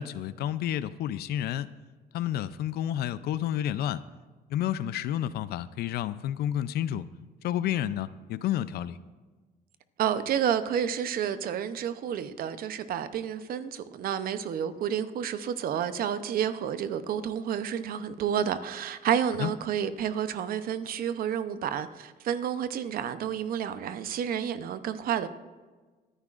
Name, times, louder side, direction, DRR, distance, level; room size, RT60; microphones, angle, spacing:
voice 1, 0.0-1.7 2.1-4.0 4.5-7.1 7.4-9.0 19.4-19.5, left 11 dB, 70° left, 0.5 m, -30 dB
voice 2, 10.0-25.3, right 9 dB, 60° right, 0.7 m, -30 dB
25.0 x 9.9 x 2.5 m
cardioid pair, 110°, 17 cm